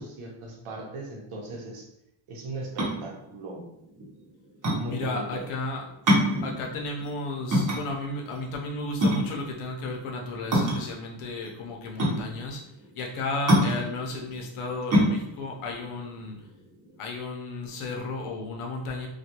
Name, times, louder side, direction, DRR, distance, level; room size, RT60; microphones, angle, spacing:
voice 1, 0.0-1.9 2.3-3.7 4.7-5.4, right 2 dB, 85° right, -1 dB, 0.8 m, -38 dB
sound 1, 2.6-17.0, equal, 40° right, 0.8 m, -26 dB
voice 2, 4.9-5.8 6.4-12.6 12.9-16.4 17.0-19.1, left 2 dB, 85° left, 1 dB, 0.7 m, -33 dB
2.3 x 2.3 x 2.8 m, 0.81 s
cardioid pair, 120°, 49 cm